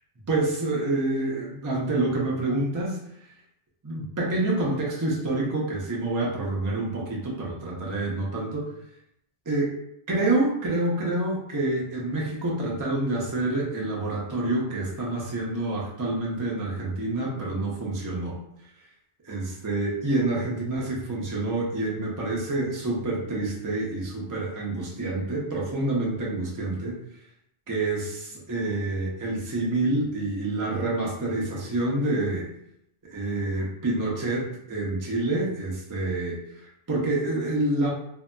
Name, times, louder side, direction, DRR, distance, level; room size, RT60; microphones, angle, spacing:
voice 1, 0.3-3.0 3.8-8.7 9.5-9.7 10.1-18.4 19.2-27.0 27.7-32.5 33.0-37.9, right 2 dB, 25° right, -4 dB, 0.5 m, -27 dB
2.8 x 2.7 x 2.2 m, 0.76 s
omnidirectional pair, 1.0 m